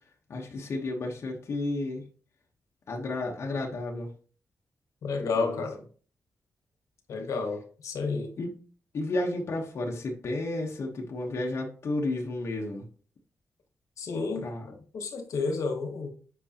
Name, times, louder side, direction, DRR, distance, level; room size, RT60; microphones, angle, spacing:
voice 1, 0.3-2.0 2.9-4.1 5.2-5.6 8.4-8.5 8.9-12.8 14.4-14.7, left 2 dB, 55° left, 1.0 m, -32 dB
voice 2, 5.0-5.8 7.1-8.3 14.0-16.1, left 4 dB, 80° left, 1.3 m, -31 dB
7.9 x 5.0 x 2.9 m
wide cardioid pair, 165°, 5 cm